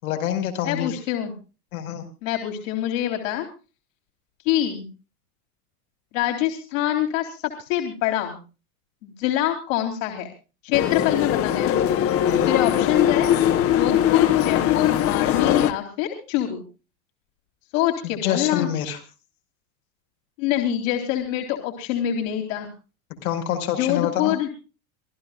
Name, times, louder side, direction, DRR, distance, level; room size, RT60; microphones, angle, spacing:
voice 1, 0.0-0.9 1.7-2.1 12.3-12.5 18.2-19.0 23.2-24.4, left 10 dB, 90° left, 4 dB, 5.5 m, -26 dB
voice 2, 0.6-1.3 2.2-3.4 4.4-4.9 6.1-8.4 9.0-10.3 10.6-11.8 12.4-13.3 13.7-16.6 17.7-18.7 20.4-22.7 23.8-24.5, left 12 dB, 65° left, 3 dB, 3.5 m, -25 dB
sound 1, 10.7-15.7, left 10 dB, 30° left, 1.2 m, -20 dB
26.5 x 15.0 x 2.5 m, 0.33 s
supercardioid pair, 155°, 42 cm